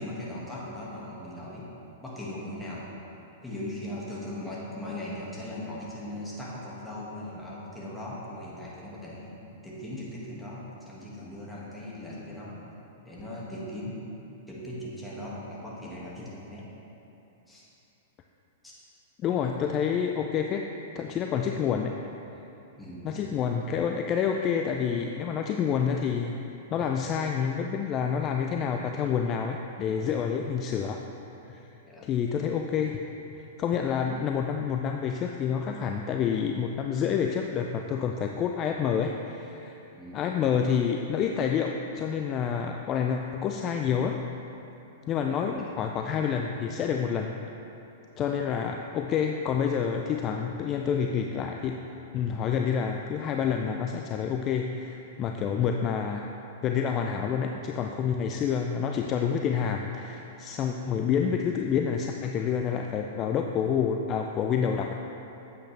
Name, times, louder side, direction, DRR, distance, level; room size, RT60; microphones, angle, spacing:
voice 1, 0.0-1.7 2.0-2.9 3.4-9.4 9.6-12.6 13.1-14.0 14.5-16.7 17.5-17.6 18.6-18.7 21.5-21.7 22.8-23.3 31.8-32.1 40.0-40.3 45.3-45.8 48.2-48.4, left 1 dB, 5° left, -6 dB, 1.9 m, -39 dB
voice 2, 19.2-20.7 20.9-21.9 23.0-26.3 26.7-31.0 31.5-31.6 32.0-33.0 33.3-39.8 40.1-44.2 45.1-47.3 48.2-51.8 52.1-56.3 56.6-64.9, left 7 dB, 35° left, 3 dB, 0.4 m, -28 dB
8.8 x 7.9 x 3.4 m, 2.9 s
hypercardioid pair, 120°, 0 cm